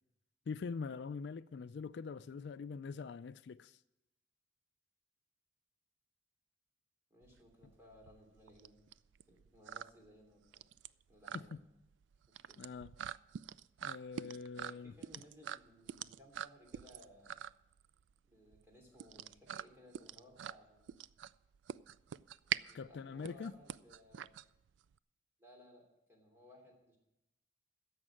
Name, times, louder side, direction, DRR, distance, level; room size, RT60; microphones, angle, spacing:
voice 1, 0.5-3.8 11.3-11.6 12.6-12.9 13.8-14.9 22.7-23.5, left 5 dB, 65° left, 0.3 m, -43 dB
voice 2, 7.1-8.8 9.3-10.7 11.1-11.6 12.3-12.6 14.6-17.4 18.2-20.9 22.6-24.3 25.4-27.0, equal, 15° right, 2.9 m, -61 dB
sound 1, 7.2-25.0, right 9 dB, 85° right, 0.3 m, -45 dB
11.0 x 7.2 x 8.9 m
head